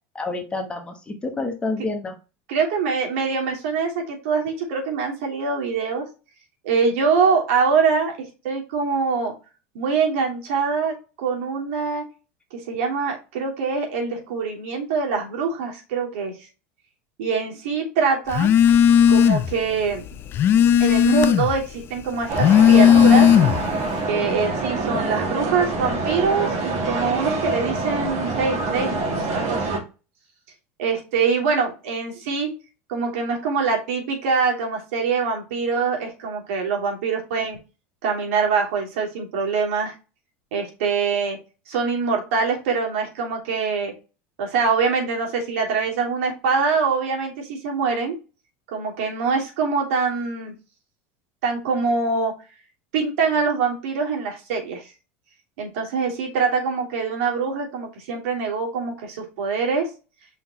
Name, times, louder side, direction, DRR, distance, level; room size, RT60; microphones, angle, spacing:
voice 1, 0.1-2.1, left 3 dB, 15° left, 4 dB, 1.2 m, -28 dB
voice 2, 2.5-6.0 6.6-8.1 8.4-9.3 9.7-12.0 12.5-16.3 17.2-18.5 19.1-20.0 20.8-23.3 24.1-29.8 30.8-32.5 32.9-37.6 38.0-39.9 40.5-41.4 41.7-43.9 44.4-48.2 48.7-50.5 51.4-52.3 52.9-54.8 55.6-59.9, right 5 dB, 80° right, 1 dB, 2.9 m, -24 dB
Telephone, 18.3-19.6 19.9-21.6 22.2-23.7, left 9 dB, 30° left, 0.4 m, -15 dB
sound 1, 22.3-29.8, right 3 dB, 50° right, 2.5 m, -26 dB
5.6 x 4.2 x 4.8 m, 0.32 s
supercardioid pair, 150°, 7 cm